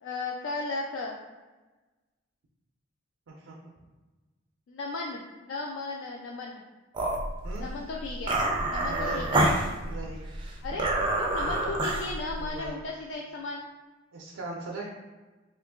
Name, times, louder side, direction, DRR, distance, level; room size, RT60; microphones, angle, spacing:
voice 1, 0.0-1.2 4.7-6.6 7.6-8.4 8.7-9.5 10.6-10.9 11.2-13.6, left 3 dB, 65° left, -1 dB, 0.3 m, -35 dB
sound 1, 6.9-12.7, right 1 dB, 25° right, 0.4 m, -28 dB
voice 2, 8.9-9.2 9.8-10.2 12.4-12.8 14.1-14.8, right 2 dB, 85° right, -2 dB, 0.5 m, -39 dB
2.7 x 2.5 x 3.5 m, 1.2 s
head